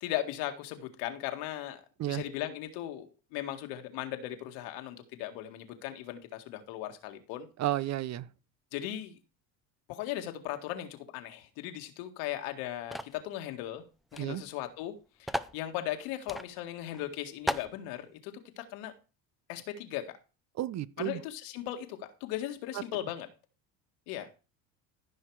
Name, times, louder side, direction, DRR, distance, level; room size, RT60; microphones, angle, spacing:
voice 1, 0.0-1.8 2.1-7.5 8.7-9.2 9.9-13.8 14.1-14.9 15.2-18.9 19.5-20.0 21.0-23.3 24.1-24.3, left 13 dB, 80° left, 1.9 m, -38 dB
voice 2, 7.6-8.3 14.2-14.4 20.6-21.2, right 14 dB, 45° right, 0.7 m, -32 dB
sound 1, 12.9-13.2 14.1-14.2 14.5-14.6 15.3-15.6 16.3-16.5 16.9-17.0 17.5-17.7, left 1 dB, ahead, 0.5 m, -34 dB
14.5 x 5.8 x 4.8 m
supercardioid pair, 100°, 39 cm